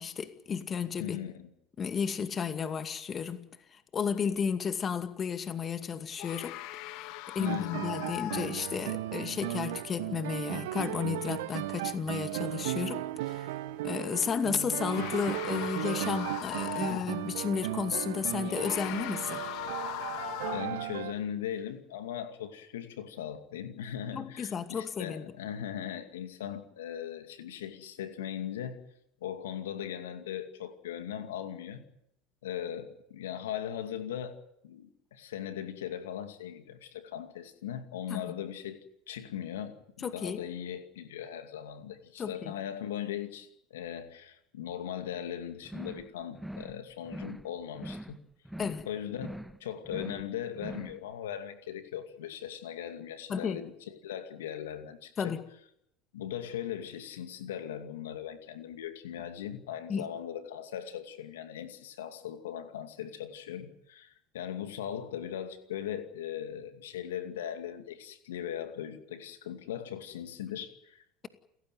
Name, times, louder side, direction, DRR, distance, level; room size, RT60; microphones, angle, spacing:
voice 1, 0.0-1.2 1.8-3.4 3.7-6.6 7.0-13.5 13.8-19.4 24.1-25.3 38.1-38.3 40.0-40.4 42.2-42.5 48.6-48.9 53.3-53.6 55.2-55.4 59.9-60.1, left 6 dB, 35° left, 2.3 m, -33 dB
voice 2, 1.0-1.5 7.4-7.9 16.9-17.1 20.5-28.8 29.2-31.8 32.4-34.4 34.6-38.8 39.1-48.2 48.9-49.3 49.6-55.4 56.1-71.3, left 10 dB, 80° left, 2.4 m, -39 dB
sound 1, 6.2-9.0 13.2-13.3 14.6-17.3 18.4-20.9, left 15 dB, 60° left, 1.4 m, -40 dB
sound 2, 7.5-21.1, right 16 dB, 75° right, 1.0 m, -36 dB
sound 3, 45.6-46.1 46.3-46.8 47.0-47.5 47.7-48.2 48.4-48.9 49.1-49.6 49.8-50.3 50.5-51.0, right 1 dB, 5° right, 0.9 m, -42 dB
29.5 x 15.5 x 9.4 m
hypercardioid pair, 80°, 0 cm